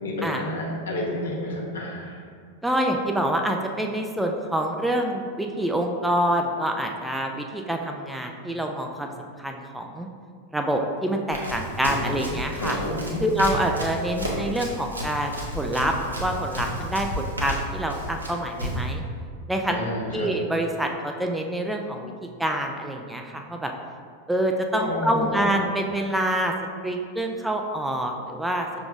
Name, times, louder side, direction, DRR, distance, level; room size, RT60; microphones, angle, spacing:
voice 1, 0.0-2.2 11.8-13.2 19.7-20.3 24.8-25.5, left 1 dB, 65° left, -3 dB, 1.0 m, -30 dB
voice 2, 2.6-9.1 9.4-10.1 10.5-12.8 13.2-15.9 16.2-19.0 19.5-19.8 20.1-22.1 22.4-23.7 24.3-26.5 26.8-28.7, right 1 dB, 5° right, 2 dB, 0.3 m, -26 dB
Run, 11.3-18.9, equal, 80° right, 0.8 m, -32 dB
5.7 x 3.7 x 2.4 m, 2.1 s
figure-of-eight pair, 90°, 0 cm